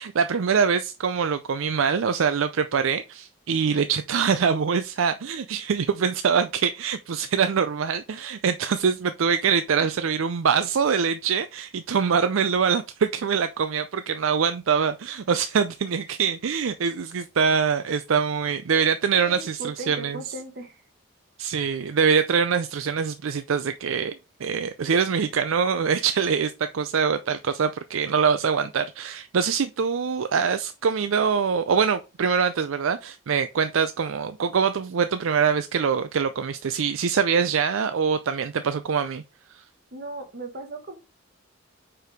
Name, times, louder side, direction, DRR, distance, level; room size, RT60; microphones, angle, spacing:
voice 1, 0.0-20.2 21.4-24.1 24.4-39.2, right 6 dB, 70° right, 0.4 m, -24 dB
voice 2, 19.2-20.8 39.9-41.0, right 2 dB, 50° right, 1.6 m, -37 dB
5.0 x 4.6 x 5.0 m
head